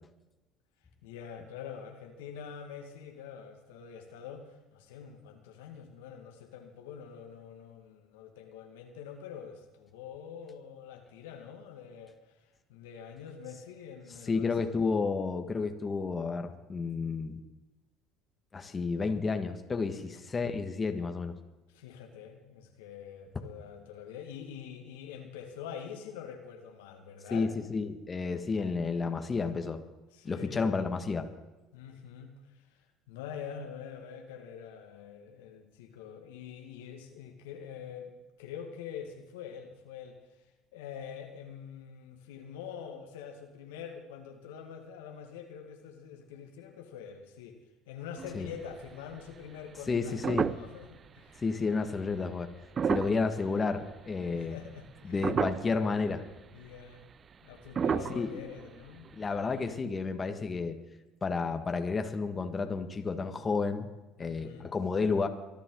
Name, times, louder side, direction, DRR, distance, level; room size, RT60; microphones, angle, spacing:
voice 1, 1.0-12.2 12.7-14.7 20.0-20.2 21.7-27.5 30.1-30.7 31.7-32.8 33.1-38.1 38.4-40.2 40.7-47.6 47.9-51.4 54.3-55.3 56.5-57.1 57.4-59.2 64.2-64.7, left 7 dB, 80° left, 4 dB, 1.9 m, -45 dB
voice 2, 14.3-17.4 18.5-21.4 27.3-29.8 30.2-31.3 48.3-48.5 49.9-50.5 51.4-52.5 52.9-54.6 55.0-56.2 58.1-58.3 59.1-60.8 61.2-63.9 64.2-65.3, left 4 dB, 30° left, 6 dB, 1.8 m, -31 dB
sound 1, 48.2-48.9 49.3-49.4 49.9-51.0 51.4-51.5 52.5-54.0 54.4-54.9 55.2-55.9 56.3-56.4 56.6-56.8 57.7-59.3 59.5-59.6, right 7 dB, 40° right, 0.5 m, -32 dB
24.0 x 11.5 x 3.9 m, 1.1 s
hypercardioid pair, 65°, 0 cm